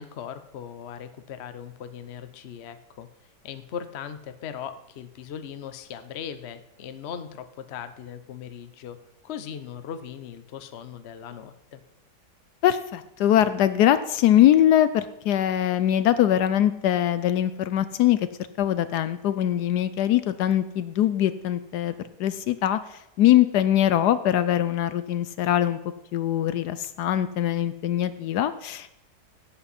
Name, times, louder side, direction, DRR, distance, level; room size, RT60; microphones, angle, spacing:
voice 1, 0.0-3.1 3.4-9.0 9.2-11.8, left 8 dB, 55° left, 10 dB, 0.8 m, -39 dB
voice 2, 12.6-18.3 18.6-21.9 22.2-25.8 26.1-28.9, left 11 dB, 75° left, 13 dB, 1.1 m, -22 dB
17.0 x 7.9 x 4.2 m, 0.86 s
omnidirectional pair, 1.9 m